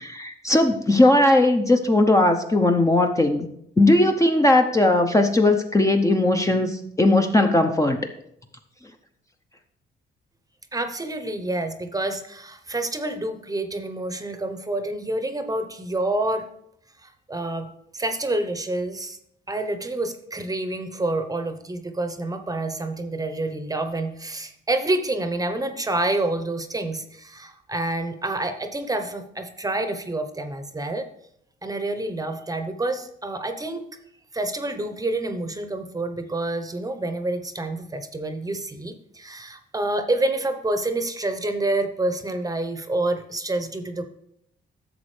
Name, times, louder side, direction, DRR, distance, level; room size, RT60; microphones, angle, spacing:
voice 1, 0.0-3.5 3.8-8.1, left 2 dB, 15° left, 4 dB, 0.7 m, -18 dB
voice 2, 10.7-16.5 17.0-19.2 19.5-31.1 31.6-33.9 34.3-44.0, right 2 dB, 20° right, 9 dB, 0.9 m, -28 dB
11.0 x 7.0 x 3.3 m, 0.73 s
cardioid pair, 90°, 20 cm